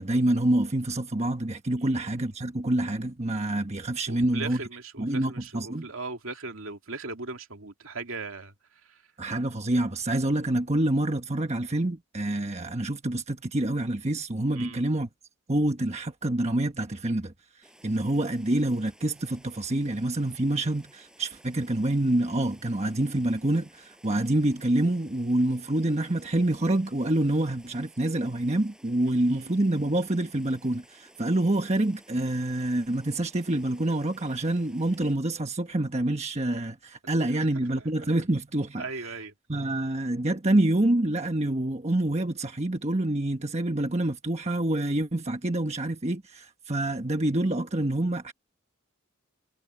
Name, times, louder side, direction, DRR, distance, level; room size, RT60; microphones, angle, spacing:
voice 1, 0.0-4.6 5.0-5.9 9.2-15.1 15.5-17.3 17.8-38.8 39.5-48.3, right 1 dB, 30° right, 1.3 m, -27 dB
voice 2, 4.1-8.5 8.8-9.0 14.6-14.8 29.1-29.5 37.3-37.5 37.8-38.1 38.8-39.3 41.4-41.5, right 3 dB, 65° right, 2.7 m, -39 dB
sound 1, 17.6-35.1, right 1 dB, 5° right, 6.8 m, -57 dB
head